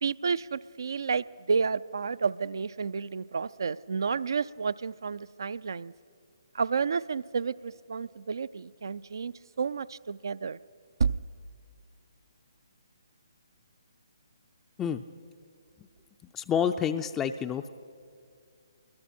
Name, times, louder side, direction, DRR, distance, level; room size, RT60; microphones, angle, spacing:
voice 1, 0.0-5.9 6.5-10.6 11.0-11.2, right 5 dB, 60° right, 17 dB, 0.4 m, -31 dB
voice 2, 16.3-17.7, left 8 dB, 15° left, 7 dB, 0.4 m, -28 dB
29.5 x 21.5 x 4.4 m, 2.3 s
figure-of-eight pair, 135°, 2 cm